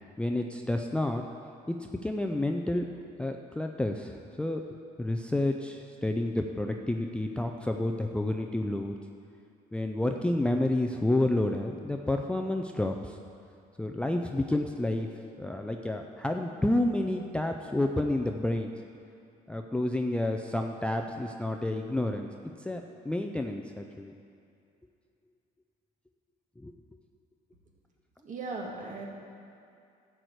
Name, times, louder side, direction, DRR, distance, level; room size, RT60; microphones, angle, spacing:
voice 1, 0.2-1.3 1.7-2.9 3.2-4.6 5.0-9.0 9.7-13.2 13.8-15.1 15.4-18.7 19.5-22.3 22.6-24.1 26.6-26.7, left 1 dB, 5° left, 3 dB, 0.4 m, -30 dB
voice 2, 28.2-29.1, right 3 dB, 45° right, -1 dB, 1.8 m, -37 dB
12.0 x 4.7 x 8.0 m, 2.4 s
cardioid pair, 110°, 17 cm